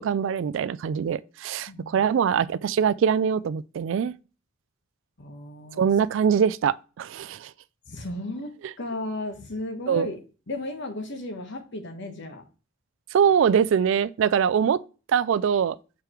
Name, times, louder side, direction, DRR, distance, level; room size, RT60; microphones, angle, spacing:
voice 1, 0.0-4.1 5.8-7.5 9.9-10.1 13.1-14.8 15.1-15.8, right 7 dB, 60° right, 0.3 m, -23 dB
voice 2, 1.7-2.1 5.2-5.9 7.9-10.2 10.5-12.4, left 2 dB, 60° left, 1.2 m, -35 dB
6.7 x 4.8 x 3.0 m
head